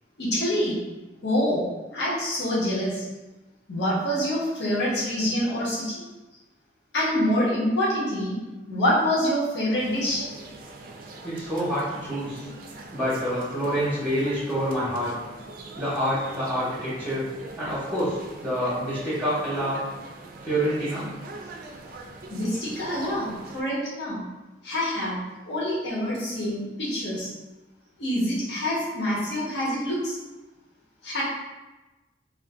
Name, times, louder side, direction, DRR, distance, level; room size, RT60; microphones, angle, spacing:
voice 1, 0.2-0.8 1.2-1.6 1.9-3.0 3.7-6.0 6.9-8.3 8.7-10.2 22.3-24.2 24.6-25.2 25.5-27.3 28.0-30.2 31.0-31.2, equal, 65° left, -7 dB, 0.9 m, -26 dB
sound 1, 9.8-23.6, right 3 dB, 50° right, 0.3 m, -42 dB
voice 2, 11.2-12.5 12.9-15.1 15.7-17.2 17.6-19.8 20.4-21.1, equal, 10° right, -10 dB, 0.8 m, -27 dB
2.5 x 2.4 x 3.5 m, 1.1 s
head